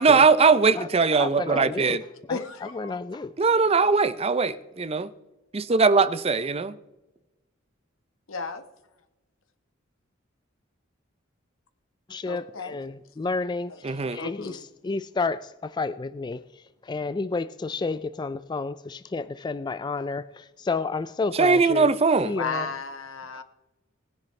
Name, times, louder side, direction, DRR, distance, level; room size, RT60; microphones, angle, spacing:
voice 1, 0.0-2.0 3.4-5.1 5.5-6.7 13.8-14.2 21.3-22.3, right 4 dB, 30° right, 0.5 m, -20 dB
voice 2, 1.2-2.0 2.3-3.3 12.1-16.4 16.8-21.9 22.3-22.7, left 3 dB, 20° left, 0.3 m, -31 dB
voice 3, 2.3-3.0 8.3-8.6 12.3-12.8 13.7-13.8 14.2-14.6 22.4-23.4, left 4 dB, 85° left, 1.2 m, -33 dB
19.5 x 10.5 x 3.2 m
head